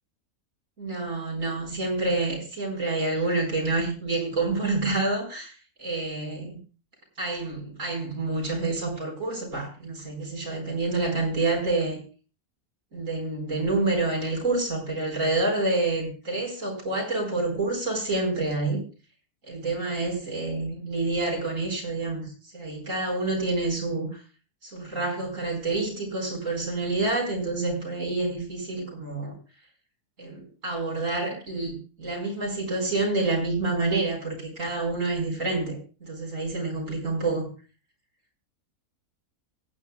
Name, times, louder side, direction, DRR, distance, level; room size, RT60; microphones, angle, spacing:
voice 1, 0.8-5.5 5.8-6.6 7.2-12.0 12.9-18.8 19.5-24.2 24.6-29.3 30.2-37.5, right 2 dB, 55° right, 0 dB, 4.8 m, -28 dB
24.0 x 9.4 x 2.3 m, 0.35 s
omnidirectional pair, 1.6 m